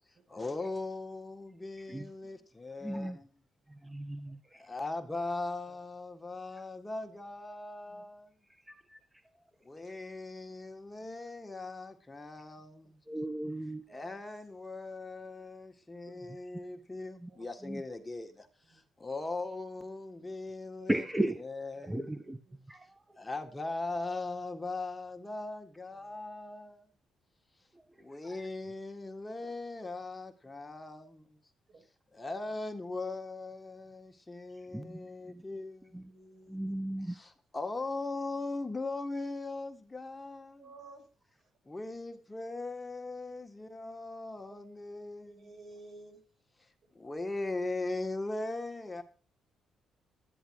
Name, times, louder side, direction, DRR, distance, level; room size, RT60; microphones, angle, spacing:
voice 1, 0.3-3.1 4.7-8.2 9.7-12.7 13.9-18.3 19.0-21.0 21.4-21.9 23.2-26.7 28.1-31.1 32.2-35.8 37.5-40.5 41.7-45.3 47.0-49.0, left 2 dB, 15° left, 5 dB, 1.8 m, -39 dB
voice 2, 2.8-3.2 3.7-4.6 6.6-6.7 8.5-9.0 13.1-13.8 16.1-16.5 17.2-17.3 17.6-17.8 20.9-21.4 21.9-23.2 27.7-28.4 34.6-35.4 35.9-36.1 36.5-37.2, right 1 dB, 10° right, 9 dB, 1.1 m, -37 dB
voice 3, 36.1-36.6 40.6-41.0 45.4-46.2, right 2 dB, 55° right, 5 dB, 5.9 m, -52 dB
13.0 x 10.0 x 4.8 m, 0.39 s
cardioid pair, 90°, 0 cm